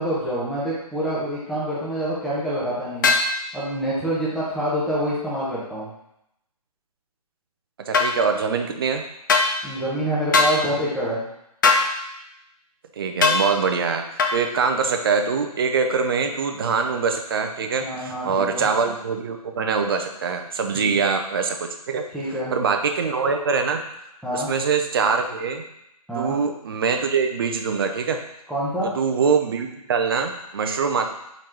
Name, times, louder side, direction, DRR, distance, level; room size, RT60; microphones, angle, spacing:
voice 1, 0.0-3.1 3.5-5.9 9.6-11.2 17.8-18.7 20.7-20.9 22.1-22.5 24.2-24.5 26.1-26.4 28.5-28.9, right 1 dB, ahead, -9 dB, 0.7 m, -26 dB
sound 1, 3.0-3.3 7.9-8.1 9.3-9.5 10.3-10.6 11.6-11.9 13.2-13.4 14.2-14.4, left 4 dB, 30° left, 0.4 m, -18 dB
voice 2, 7.9-9.0 13.0-14.0 14.3-22.0 22.5-23.8 24.3-25.6 26.2-28.2 29.0-31.1, right 5 dB, 35° right, 5 dB, 0.4 m, -23 dB
4.1 x 3.9 x 3.3 m, 0.82 s
figure-of-eight pair, 140°, 20 cm